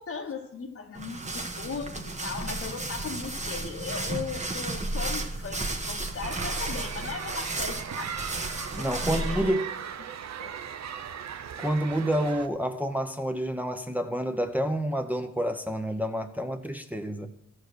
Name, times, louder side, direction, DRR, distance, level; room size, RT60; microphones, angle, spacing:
voice 1, 0.0-8.1 8.8-9.6 10.0-10.1 10.4-10.6, left 5 dB, 50° left, 1.1 m, -38 dB
sound 1, 0.9-9.5, right 2 dB, 25° right, 1.1 m, -33 dB
sound 2, 6.2-12.5, right 8 dB, 65° right, 0.7 m, -38 dB
voice 2, 8.7-9.6 11.6-17.3, equal, 5° right, 0.8 m, -28 dB
13.5 x 4.7 x 6.3 m
cardioid pair, 65°, 29 cm